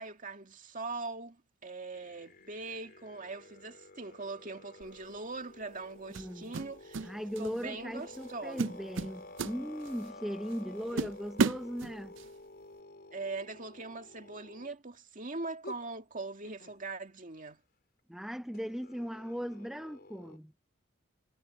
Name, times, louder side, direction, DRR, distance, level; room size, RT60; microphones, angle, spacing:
voice 1, 0.0-1.4 1.6-7.1 7.4-8.8 10.9-11.1 13.1-17.6, right 3 dB, 40° right, 2.1 m, -41 dB
sound 1, 1.9-14.7 15.6-15.8 16.4-16.8 18.5-20.4, left 2 dB, 50° left, 4.1 m, -51 dB
sound 2, 4.8-5.0 6.1-7.1 7.4-7.7 8.1-8.3 8.6-10.1 10.5-10.6 11.0-12.3, right 4 dB, 65° right, 0.5 m, -33 dB
voice 2, 6.1-6.5 7.0-12.2 18.1-20.5, equal, ahead, 0.6 m, -38 dB
head